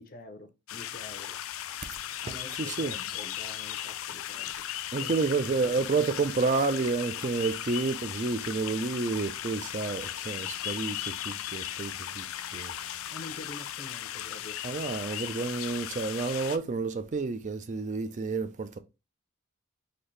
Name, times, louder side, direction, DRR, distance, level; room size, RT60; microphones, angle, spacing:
voice 1, 0.0-1.4 2.2-4.5 13.1-14.6, left 2 dB, 45° left, 0.7 m, -47 dB
sound 1, 0.7-16.6, left 11 dB, 75° left, 0.4 m, -37 dB
voice 2, 2.3-2.9 4.9-12.8 14.6-18.8, right 4 dB, 35° right, 0.4 m, -30 dB
4.0 x 2.7 x 3.2 m
head